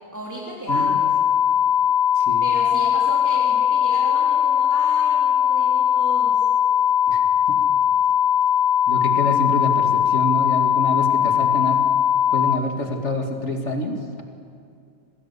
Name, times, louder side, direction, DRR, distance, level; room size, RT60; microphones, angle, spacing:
voice 1, 0.1-1.1 2.4-6.4, equal, 10° right, -5 dB, 3.8 m, -34 dB
voice 2, 0.7-1.0 2.1-2.5 7.1-7.2 7.5-7.6 8.9-11.9 12.3-14.2, left 1 dB, 55° left, 2 dB, 2.7 m, -27 dB
sound 1, 0.7-12.6, left 9 dB, 25° left, 0.6 m, -19 dB
28.0 x 19.0 x 8.4 m, 2.3 s
omnidirectional pair, 1.5 m